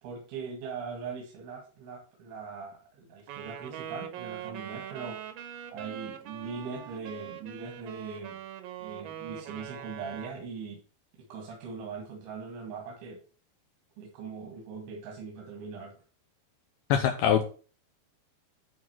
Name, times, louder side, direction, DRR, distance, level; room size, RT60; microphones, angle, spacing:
voice 1, 0.0-5.3 5.7-8.4 8.8-10.8 11.3-13.2 14.0-15.9, right 5 dB, 90° right, 0 dB, 4.3 m, -40 dB
Wind instrument woodwind instrument, 3.3-10.4, right 10 dB, 75° right, 2.2 m, -42 dB
voice 2, 16.9-17.5, left 9 dB, 80° left, 5 dB, 2.4 m, -23 dB
11.0 x 4.4 x 6.1 m, 0.38 s
omnidirectional pair, 5.2 m